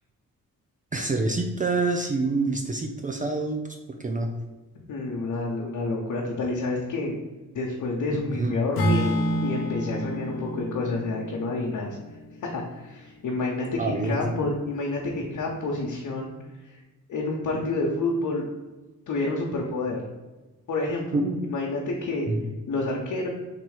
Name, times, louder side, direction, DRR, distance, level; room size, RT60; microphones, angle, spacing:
voice 1, 0.9-4.3 8.4-8.5 13.8-14.4 21.1-21.6 22.3-22.5, right 3 dB, 25° right, 3 dB, 0.5 m, -27 dB
voice 2, 4.9-7.2 7.5-9.1 9.4-12.0 12.4-16.3 16.6-16.8 17.1-18.5 19.1-20.1 20.7-22.3 22.7-23.3, left 2 dB, 60° left, -2 dB, 0.9 m, -29 dB
Acoustic guitar / Strum, 8.8-13.0, equal, 85° left, 0.9 m, -29 dB
3.6 x 3.0 x 4.8 m, 1.2 s
cardioid pair, 70°, 34 cm